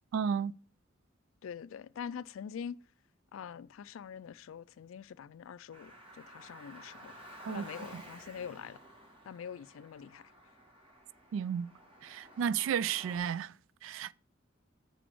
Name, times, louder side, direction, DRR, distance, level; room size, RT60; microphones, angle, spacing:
voice 1, 0.1-0.5 7.4-7.6 7.9-8.0 11.3-11.7 12.0-13.5 13.8-14.1, right 7 dB, 70° right, 0.3 m, -32 dB
voice 2, 1.4-2.8 3.3-7.1 7.5-8.8 9.3-10.3, left 7 dB, 90° left, 0.4 m, -44 dB
Car, 5.7-13.2, right 1 dB, 25° right, 1.6 m, -53 dB
6.8 x 6.1 x 4.5 m
head